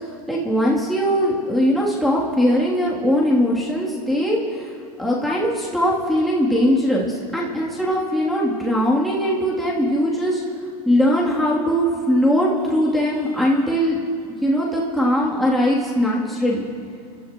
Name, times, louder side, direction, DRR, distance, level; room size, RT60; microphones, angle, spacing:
voice 1, 0.3-10.4 10.8-14.0 14.4-16.6, equal, ahead, -6 dB, 2.9 m, -20 dB
28.0 x 13.5 x 3.0 m, 2.4 s
hypercardioid pair, 95°, 20 cm